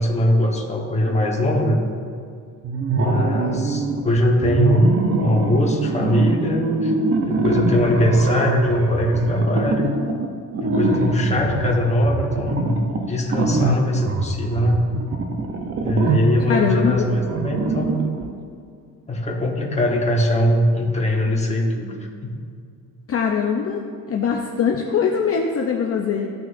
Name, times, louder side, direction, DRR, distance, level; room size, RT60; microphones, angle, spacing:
voice 1, 0.0-1.8 2.9-6.9 7.2-10.0 10.6-12.8 13.1-14.8 15.8-18.0 19.1-21.9 22.2-22.4, left 1 dB, 20° left, -1 dB, 1.1 m, -21 dB
sound 1, 2.6-4.0 4.4-18.3, right 3 dB, 40° right, 0.7 m, -23 dB
voice 2, 16.5-17.1 22.1-22.3 23.1-23.8 24.1-26.3, left 6 dB, 45° left, 1 dB, 0.6 m, -22 dB
14.5 x 6.0 x 2.5 m, 2.3 s
wide cardioid pair, 165°, 34 cm